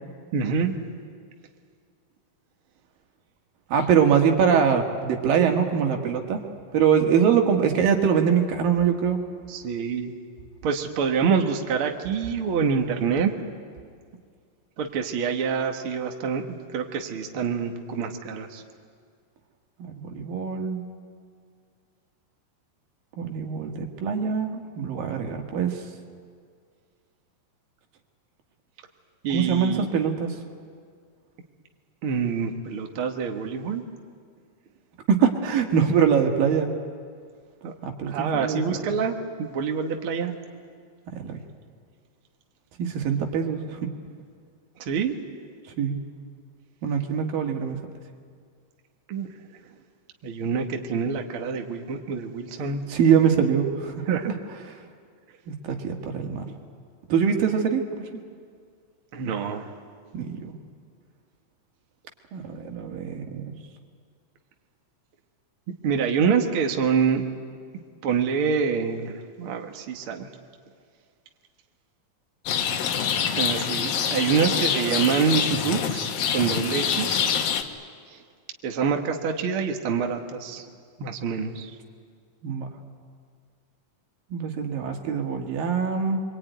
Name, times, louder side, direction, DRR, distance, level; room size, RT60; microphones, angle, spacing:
voice 1, 0.3-0.8 4.0-4.3 9.5-10.1 10.6-13.3 14.8-18.6 29.2-29.9 32.0-33.8 37.6-37.7 38.1-40.4 44.8-45.1 49.1-49.3 50.2-52.9 54.1-54.3 56.4-56.5 59.1-59.7 65.8-67.2 68.0-70.3 73.4-77.2 78.1-78.2 78.6-80.7 81.0-81.7, right 6 dB, 50° right, 3 dB, 1.9 m, -26 dB
voice 2, 3.7-6.4 6.7-9.2 19.8-20.8 23.2-25.8 29.3-30.3 35.1-36.7 37.8-38.6 41.1-41.4 42.8-43.9 45.8-46.0 46.8-47.8 52.9-54.3 54.7-54.8 55.5-56.4 57.1-58.2 60.1-60.5 62.3-63.6 82.4-82.7 84.3-86.2, right 7 dB, 80° right, 3 dB, 3.6 m, -23 dB
Rain, 72.5-77.6, left 8 dB, 80° left, 3.2 m, -26 dB
27.0 x 23.5 x 9.4 m, 2.1 s
omnidirectional pair, 4.0 m